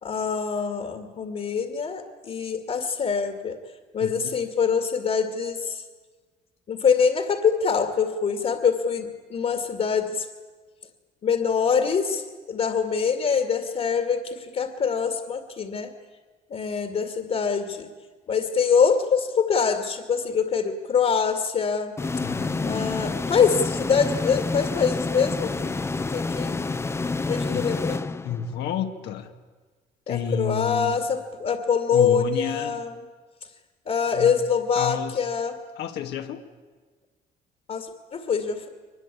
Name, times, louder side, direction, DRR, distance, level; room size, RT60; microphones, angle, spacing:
voice 1, 0.0-3.6 3.9-5.8 6.7-10.3 11.2-15.9 16.5-17.9 18.3-21.9 22.6-25.7 26.1-26.6 27.3-28.0 30.1-33.0 33.9-35.6 37.7-38.7, left 6 dB, 45° left, 6 dB, 2.3 m, -24 dB
voice 2, 4.0-4.3 22.2-23.2 27.5-27.8 28.2-29.3 30.1-31.0 31.9-32.8 34.1-34.3 34.8-35.3 35.8-36.5, left 8 dB, 75° left, 5 dB, 2.0 m, -31 dB
sound 1, 22.0-28.7, left 3 dB, 15° left, 0.6 m, -28 dB
23.0 x 21.0 x 8.5 m, 1.4 s
cardioid pair, 110°, 17 cm